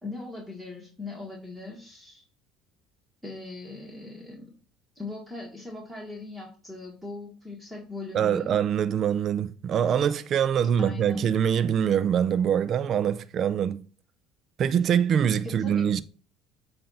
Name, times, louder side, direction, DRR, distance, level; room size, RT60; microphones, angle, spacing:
voice 1, 0.0-2.2 3.2-4.5 5.0-8.5 10.8-11.3 15.4-15.8, left 3 dB, 5° right, 1.6 m, -40 dB
voice 2, 8.1-13.9 14.6-16.0, right 8 dB, 50° right, 0.4 m, -24 dB
7.7 x 2.6 x 5.6 m
cardioid pair, 110°, 0 cm